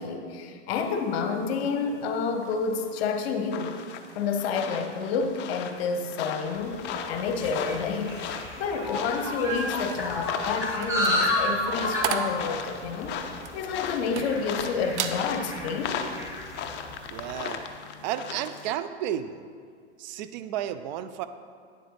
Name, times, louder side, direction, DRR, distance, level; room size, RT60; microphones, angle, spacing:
voice 1, 0.0-3.7 4.1-8.2 8.6-13.2 13.5-16.1, left 5 dB, 60° left, 6 dB, 1.0 m, -29 dB
sound 1, 1.6-18.7, left 7 dB, 30° left, 0.6 m, -37 dB
sound 2, 6.7-17.3, left 1 dB, 10° right, 1.6 m, -32 dB
sound 3, 10.7-14.6 14.9-15.2 15.7-16.0, right 8 dB, 80° right, 0.7 m, -34 dB
voice 2, 17.1-17.6 18.0-19.4 20.0-21.3, right 11 dB, 40° right, 11 dB, 0.4 m, -32 dB
9.8 x 7.7 x 3.2 m, 2.1 s
hypercardioid pair, 105°, 35 cm